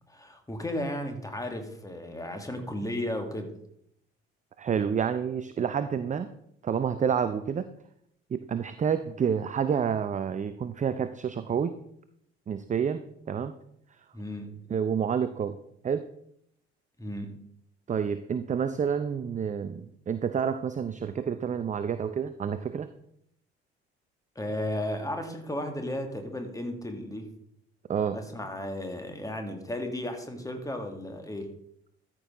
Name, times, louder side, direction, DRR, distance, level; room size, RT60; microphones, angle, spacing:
voice 1, 0.1-3.5 14.1-14.6 17.0-17.4 24.4-27.3 28.1-31.5, left 1 dB, 10° left, 5 dB, 1.9 m, -34 dB
voice 2, 4.6-6.3 6.6-7.7 8.3-11.7 12.5-13.0 13.3-13.5 14.7-15.6 15.8-16.1 17.9-22.9 27.9-28.2, right 7 dB, 25° right, 11 dB, 0.5 m, -29 dB
13.5 x 6.2 x 3.7 m, 0.73 s
figure-of-eight pair, 55°, 33 cm